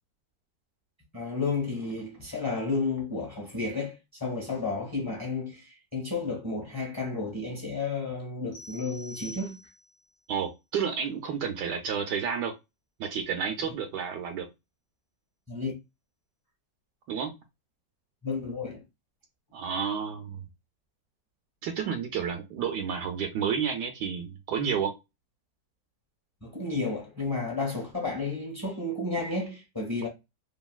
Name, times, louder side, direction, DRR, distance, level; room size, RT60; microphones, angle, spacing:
voice 1, 1.1-9.6 15.5-15.7 18.2-18.8 26.4-30.1, left 3 dB, 10° left, 1.0 m, -32 dB
sound 1, 8.5-10.0, left 2 dB, 50° left, 0.9 m, -46 dB
voice 2, 10.3-12.5 13.0-14.5 17.1-17.3 19.5-20.4 21.6-24.9, right 7 dB, 75° right, 1.1 m, -30 dB
3.0 x 2.6 x 2.3 m
omnidirectional pair, 2.0 m